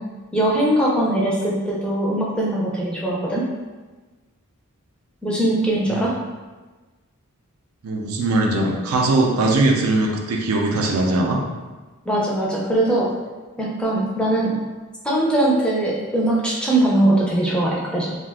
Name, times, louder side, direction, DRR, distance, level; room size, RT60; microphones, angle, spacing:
voice 1, 0.3-3.4 5.2-6.1 12.1-13.1 13.6-14.6 15.0-18.2, right 1 dB, 5° left, -4 dB, 0.4 m, -21 dB
voice 2, 7.8-11.4, right 2 dB, 75° right, 0 dB, 0.4 m, -20 dB
2.4 x 2.2 x 3.4 m, 1.3 s
head